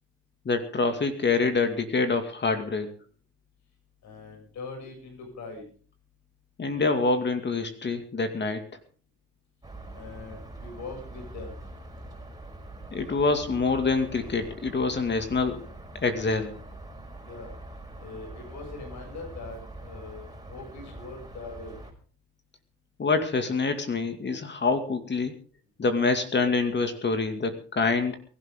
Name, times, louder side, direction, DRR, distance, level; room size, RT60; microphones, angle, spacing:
voice 1, 0.5-2.9 6.6-8.6 12.9-15.6 16.0-16.5 23.0-25.3 25.8-28.2, left 4 dB, 35° left, 7 dB, 2.3 m, -26 dB
voice 2, 4.0-5.6 9.9-11.6 17.2-17.5 18.0-20.2 20.5-21.7, left 3 dB, 65° left, 1 dB, 7.3 m, -42 dB
sound 1, 9.6-21.9, right 1 dB, 15° right, 4.7 m, -44 dB
23.0 x 12.0 x 3.8 m, 0.42 s
supercardioid pair, 80°, 30 cm